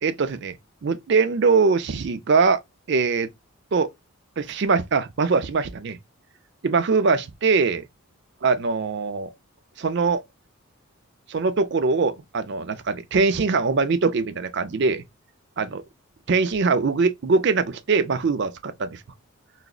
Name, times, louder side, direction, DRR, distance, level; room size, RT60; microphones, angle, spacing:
voice 1, 0.0-0.6 0.8-2.6 2.9-3.3 3.7-3.9 4.4-6.0 6.6-7.9 8.4-9.3 9.8-10.2 11.3-15.0 15.6-15.8 16.3-19.0, right 4 dB, 50° right, 0.4 m, -22 dB
4.8 x 2.0 x 2.3 m
head